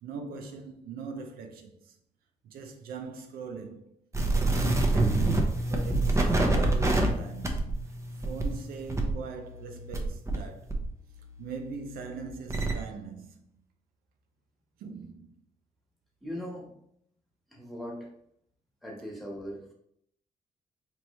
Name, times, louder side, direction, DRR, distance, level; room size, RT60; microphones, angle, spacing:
voice 1, 0.0-2.0 2.4-4.0 4.3-7.9 8.2-10.8 11.4-13.6 14.8-15.4, right 5 dB, 90° right, 0.5 m, -41 dB
sound 1, 4.1-10.4 10.7-12.7, right 2 dB, 20° right, 0.8 m, -27 dB
voice 2, 16.2-16.7 17.5-18.1 18.8-19.7, equal, ahead, 1.4 m, -39 dB
4.3 x 2.9 x 3.2 m
cardioid pair, 80°, 15 cm